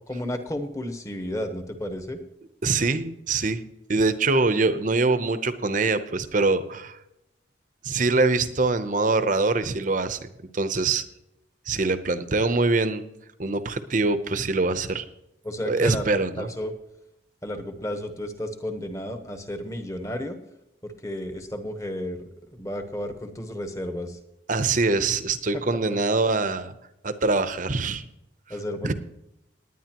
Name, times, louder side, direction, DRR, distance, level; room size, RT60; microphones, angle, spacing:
voice 1, 0.1-2.2 15.4-16.1 16.4-16.7 17.4-20.4 20.8-24.2 25.5-25.6 28.5-28.9, left 1 dB, 15° left, 6 dB, 1.1 m, -32 dB
voice 2, 2.6-3.6 3.9-7.0 7.8-10.2 10.5-11.0 11.7-13.0 13.4-15.0 15.7-16.5 24.5-26.7 27.0-28.0 28.8-28.9, right 3 dB, 40° right, 11 dB, 0.7 m, -24 dB
19.0 x 9.9 x 3.0 m, 0.84 s
head